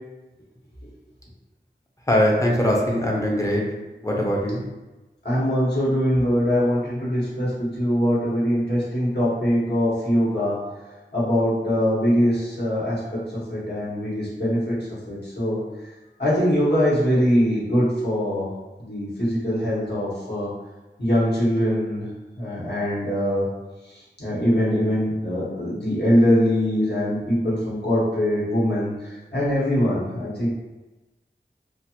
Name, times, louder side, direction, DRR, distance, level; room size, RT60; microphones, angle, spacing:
voice 1, 2.1-3.6 4.0-4.6, equal, 15° left, -2 dB, 0.6 m, -21 dB
voice 2, 5.2-10.6 11.1-14.8 15.1-15.6 16.2-18.5 18.8-20.5 21.0-22.1 22.4-23.5 23.9-30.5, equal, 65° left, -9 dB, 1.3 m, -22 dB
2.5 x 2.4 x 2.9 m, 1.1 s
wide cardioid pair, 45°, 19 cm